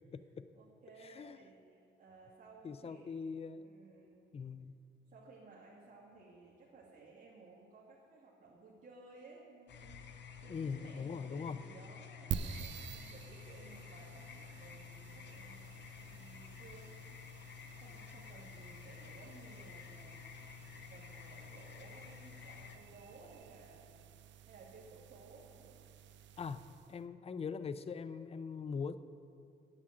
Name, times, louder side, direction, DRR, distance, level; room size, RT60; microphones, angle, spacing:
voice 1, 0.0-0.5 1.0-1.4 2.6-3.7 4.3-4.8 10.5-11.6 26.4-29.0, left 5 dB, 30° left, 13 dB, 0.5 m, -42 dB
voice 2, 0.5-3.2 3.6-4.2 5.1-15.8 16.1-17.1 17.8-24.0 24.5-25.8, right 3 dB, 40° right, -8 dB, 2.3 m, -58 dB
sound 1, 9.7-22.8, left 8 dB, 60° left, 0.9 m, -52 dB
sound 2, 12.3-27.0, right 8 dB, 70° right, 0.5 m, -49 dB
8.9 x 7.4 x 8.9 m, 2.5 s
cardioid pair, 90°, 20 cm